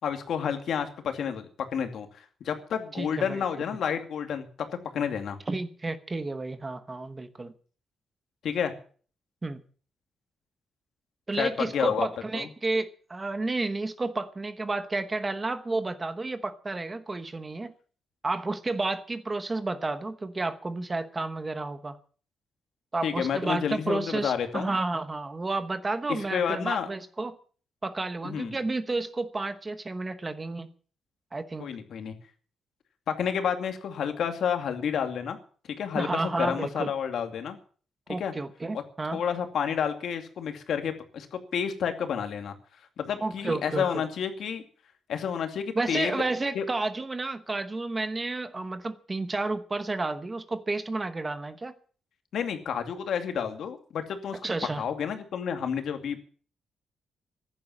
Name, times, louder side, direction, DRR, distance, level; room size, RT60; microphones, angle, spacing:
voice 1, 0.0-4.5 4.9-5.4 8.4-8.7 11.3-12.1 12.3-12.5 23.0-24.8 26.3-26.9 28.2-28.6 31.6-32.1 33.1-35.4 35.8-37.6 38.2-38.3 39.1-42.5 43.0-44.6 45.1-46.2 46.5-46.6 52.3-54.4 54.8-56.2, left 7 dB, 65° left, 6 dB, 2.4 m, -30 dB
voice 2, 2.9-3.4 5.5-7.5 9.4-9.6 11.3-17.7 18.2-22.0 22.9-27.4 27.8-30.7 31.3-31.7 35.9-36.9 38.1-39.2 43.2-44.1 45.8-51.7 54.4-54.8, right 3 dB, 20° right, 11 dB, 1.0 m, -31 dB
15.0 x 11.0 x 7.4 m, 0.43 s
wide cardioid pair, 165°, 0 cm